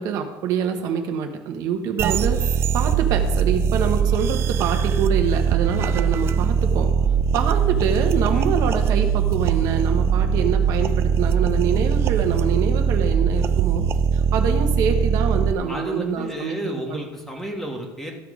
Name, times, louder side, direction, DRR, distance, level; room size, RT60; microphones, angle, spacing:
voice 1, 0.0-6.9 7.3-13.8 14.1-17.0, right 7 dB, 55° right, 4 dB, 1.1 m, -26 dB
sound 1, 2.0-15.5, right 7 dB, 40° right, 0.4 m, -21 dB
voice 2, 15.7-18.1, right 1 dB, 5° left, 1 dB, 1.4 m, -31 dB
14.0 x 5.9 x 4.9 m, 1.1 s
cardioid pair, 160°, 7 cm